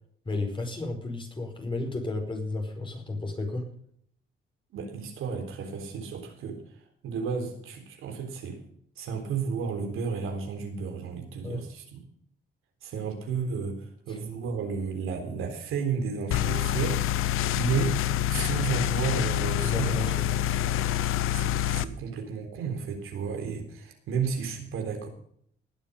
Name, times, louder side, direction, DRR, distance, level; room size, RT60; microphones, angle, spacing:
voice 1, 0.2-3.7 11.4-11.6 14.1-14.2 19.6-20.3, left 2 dB, 25° left, 3 dB, 4.9 m, -33 dB
voice 2, 4.7-6.6 7.0-8.6 9.0-12.1 12.8-17.0 17.6-18.0 18.3-20.1 20.4-20.7 21.3-25.1, right 5 dB, 80° right, 4 dB, 3.7 m, -32 dB
sound 1, 16.3-21.8, left 12 dB, 85° left, 0.8 m, -26 dB
19.5 x 7.3 x 5.3 m, 0.64 s
cardioid pair, 95°, 21 cm